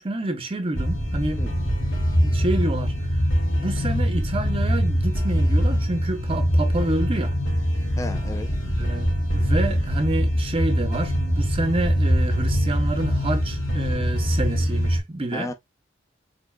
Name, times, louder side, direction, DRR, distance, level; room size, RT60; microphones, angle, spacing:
voice 1, 0.0-1.4 2.2-2.9 3.6-7.4 8.8-15.5, right 2 dB, 30° right, 0.7 m, -28 dB
sound 1, 0.7-15.0, equal, 90° left, 2.1 m, -23 dB
voice 2, 8.0-8.5 15.3-15.5, left 2 dB, 15° left, 0.5 m, -33 dB
4.7 x 3.8 x 2.3 m
head